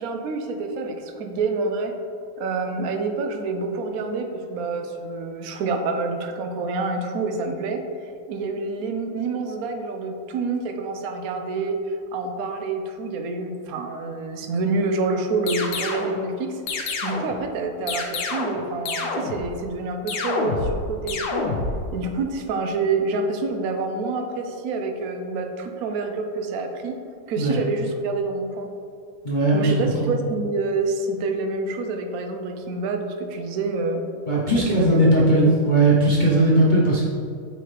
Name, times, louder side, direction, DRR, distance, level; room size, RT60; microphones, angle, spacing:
voice 1, 0.0-1.9 2.4-21.4 21.9-27.0 27.3-28.7 29.5-34.0 34.5-35.5, right 3 dB, 70° right, 4 dB, 0.9 m, -27 dB
sound 1, 15.5-16.1 16.7-17.4 17.9-18.6 18.9-19.5 20.1-20.8 21.1-21.8, left 4 dB, 75° left, 1.5 m, -27 dB
voice 2, 29.2-30.1 34.3-37.0, right 1 dB, 55° left, -8 dB, 0.5 m, -18 dB
7.7 x 4.0 x 3.3 m, 2.4 s
omnidirectional pair, 2.1 m